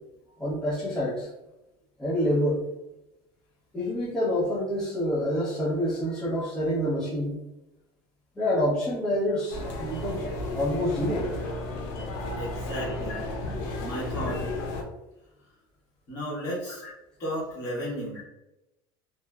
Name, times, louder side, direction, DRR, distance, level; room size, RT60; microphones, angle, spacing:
voice 1, 0.4-1.3 2.0-2.6 3.7-7.3 8.4-11.3 13.1-13.2, equal, 5° left, -11 dB, 0.7 m, -27 dB
sound 1, 9.5-14.8, left 2 dB, 75° left, 0.6 m, -33 dB
voice 2, 12.4-13.2 13.5-14.4 16.1-16.8 17.2-18.2, equal, 35° left, -7 dB, 1.2 m, -34 dB
2.9 x 2.0 x 2.3 m, 0.93 s
cardioid pair, 150°, 11 cm